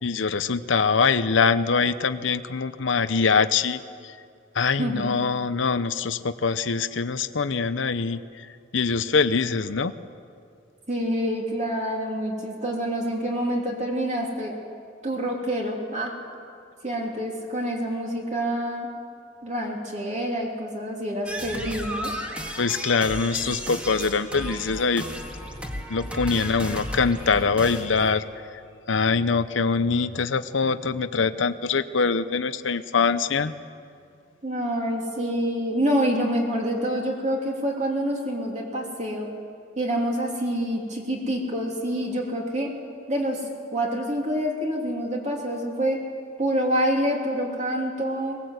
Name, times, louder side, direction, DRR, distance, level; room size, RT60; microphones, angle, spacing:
voice 1, 0.0-4.1 4.5-8.2 8.7-9.9 22.6-25.1 25.9-28.2 28.9-33.5, left 5 dB, 70° left, 12 dB, 0.8 m, -23 dB
voice 2, 4.8-5.2 10.9-14.5 15.0-16.2 16.8-18.9 19.4-22.1 34.4-39.3 39.8-42.7 43.1-46.0 46.4-48.4, equal, 40° right, -1 dB, 3.1 m, -27 dB
sound 1, 21.2-28.2, equal, 5° right, 1.9 m, -34 dB
22.0 x 19.5 x 8.0 m, 2.3 s
head